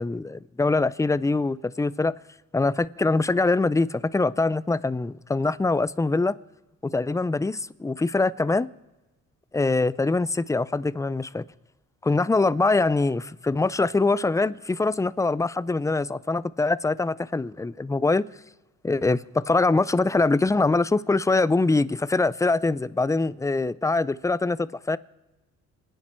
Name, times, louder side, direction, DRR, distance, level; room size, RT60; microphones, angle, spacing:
voice 1, 0.0-2.1 2.5-6.3 6.8-8.7 9.5-11.4 12.0-18.2 18.8-25.0, left 3 dB, 10° left, 0.5 m, -23 dB
28.0 x 9.9 x 4.5 m
cardioid pair, 90°, 30 cm